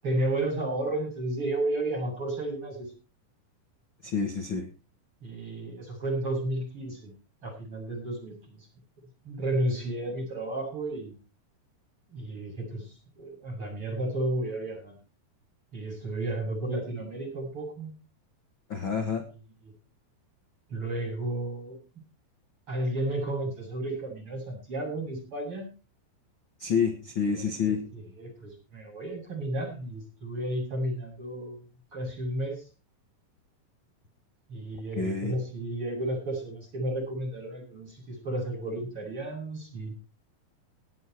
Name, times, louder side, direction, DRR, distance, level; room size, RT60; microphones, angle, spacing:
voice 1, 0.0-2.9 5.2-7.1 7.4-8.7 9.2-11.1 12.1-14.9 15.7-17.9 19.3-19.7 20.7-21.8 22.7-25.7 27.6-31.7 31.9-32.6 34.5-39.9, right 1 dB, 30° right, -2 dB, 8.6 m, -32 dB
voice 2, 4.0-4.7 18.7-19.2 26.6-27.8 35.0-35.3, left 6 dB, 85° left, 4 dB, 1.0 m, -28 dB
18.5 x 9.3 x 4.6 m, 0.34 s
omnidirectional pair, 5.0 m